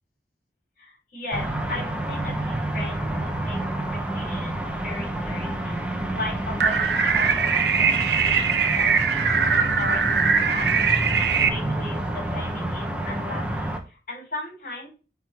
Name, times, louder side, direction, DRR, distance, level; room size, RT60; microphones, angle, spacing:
voice 1, 0.8-3.6 3.9-10.7 11.0-14.9, left 2 dB, 50° left, 0 dB, 4.3 m, -37 dB
sound 1, 1.3-13.8, right 1 dB, 5° right, 0.9 m, -29 dB
sound 2, 6.6-11.5, right 6 dB, 65° right, 0.8 m, -21 dB
8.3 x 4.8 x 3.4 m, 0.34 s
head